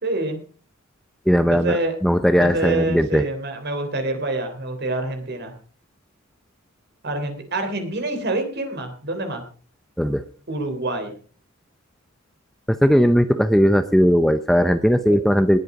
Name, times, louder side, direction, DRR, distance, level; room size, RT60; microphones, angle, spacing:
voice 1, 0.0-0.4 1.5-1.9 2.4-5.5 7.0-9.4 10.5-11.1 15.1-15.2, right 2 dB, 50° right, 7 dB, 3.3 m, -26 dB
voice 2, 1.3-1.8 2.0-3.2 10.0-10.2 12.7-15.6, equal, ahead, 10 dB, 0.6 m, -18 dB
20.0 x 8.2 x 4.8 m, 0.40 s
head